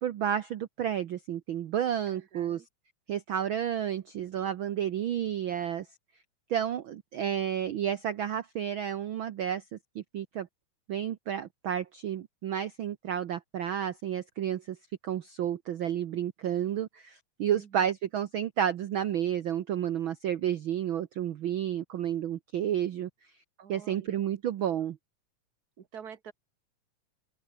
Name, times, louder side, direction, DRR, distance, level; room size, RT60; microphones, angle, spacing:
voice 1, 0.0-2.6 3.1-5.9 6.5-10.5 10.9-14.8 15.0-23.1 23.7-25.0, right 10 dB, 85° right, 1.1 m, -31 dB
voice 2, 2.1-2.7 17.5-17.9 23.6-24.2 24.6-24.7 25.8-26.3, right 7 dB, 50° right, 1.2 m, -48 dB
open air
omnidirectional pair, 3.5 m